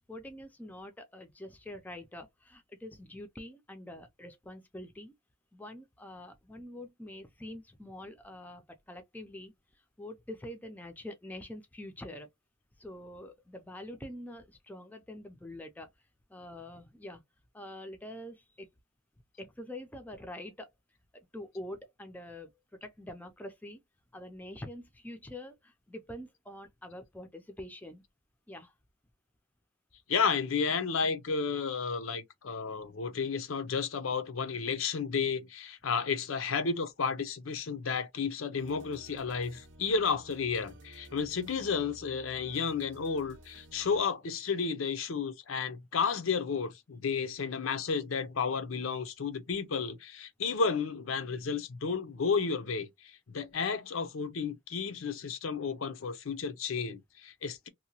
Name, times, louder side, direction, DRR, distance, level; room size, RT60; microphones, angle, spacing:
voice 1, 0.1-5.1 5.5-12.3 12.8-15.9 16.3-17.2 17.5-18.7 19.4-20.7 21.1-23.8 24.1-28.0 28.5-28.7, left 1 dB, 10° left, 0.4 m, -45 dB
voice 2, 30.1-57.7, left 5 dB, 85° left, 0.6 m, -32 dB
sound 1, 38.6-44.0, right 1 dB, 65° right, 0.5 m, -54 dB
2.8 x 2.1 x 2.8 m
head